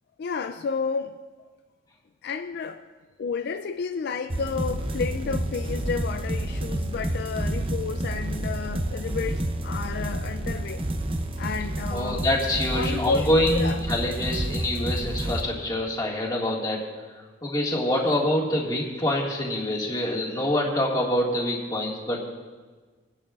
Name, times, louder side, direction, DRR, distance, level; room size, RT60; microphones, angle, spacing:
voice 1, 0.2-1.2 2.2-2.8 3.2-10.8 11.4-12.3 12.7-13.8, left 5 dB, 55° left, 8 dB, 0.3 m, -31 dB
sound 1, 4.3-15.4, right 1 dB, 30° right, 0.7 m, -29 dB
voice 2, 11.9-16.8 17.1-22.2, left 1 dB, 20° left, -2 dB, 1.9 m, -26 dB
21.5 x 10.5 x 2.4 m, 1.4 s
head